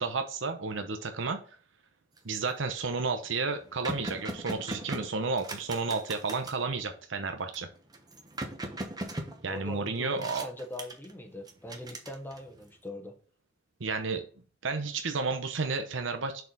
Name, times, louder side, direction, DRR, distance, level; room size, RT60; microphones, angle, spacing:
voice 1, 0.0-1.4 2.2-7.7 9.4-10.5 13.8-14.2 14.6-16.4, right 4 dB, 70° right, 7 dB, 0.8 m, -32 dB
sound 1, 2.2-2.5 3.0-3.1 3.3-6.6 7.5-9.8 10.2-11.1 11.5-12.6, right 1 dB, 20° right, 1.0 m, -39 dB
voice 2, 9.5-13.2, left 1 dB, 10° left, 5 dB, 0.9 m, -42 dB
6.7 x 4.3 x 3.9 m, 0.42 s
head